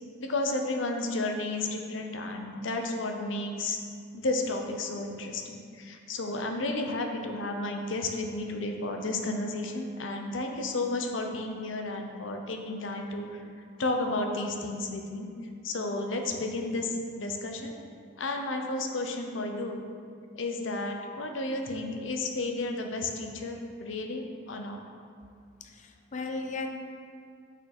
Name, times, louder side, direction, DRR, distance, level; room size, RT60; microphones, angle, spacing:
voice 1, 0.2-3.8 4.1-13.3 13.8-15.3 15.6-17.7 18.2-19.9 20.3-24.8, left 2 dB, 70° left, 3 dB, 0.8 m, -32 dB
voice 2, 25.6-26.7, left 3 dB, 40° left, 4 dB, 0.4 m, -36 dB
6.4 x 6.2 x 4.4 m, 2.3 s
head